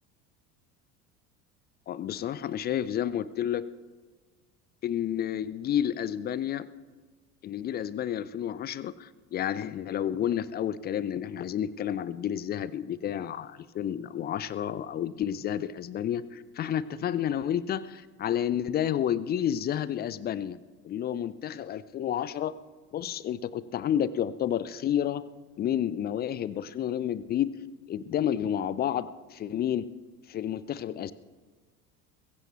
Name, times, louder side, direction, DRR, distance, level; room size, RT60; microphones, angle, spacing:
voice 1, 1.9-3.6 4.8-6.7 7.4-20.6 20.8-22.5 22.9-25.2 25.6-27.5 27.9-29.9 30.3-31.1, left 10 dB, 20° left, 18 dB, 0.4 m, -30 dB
21.0 x 16.0 x 3.0 m, 1.4 s
figure-of-eight pair, 65°, 47 cm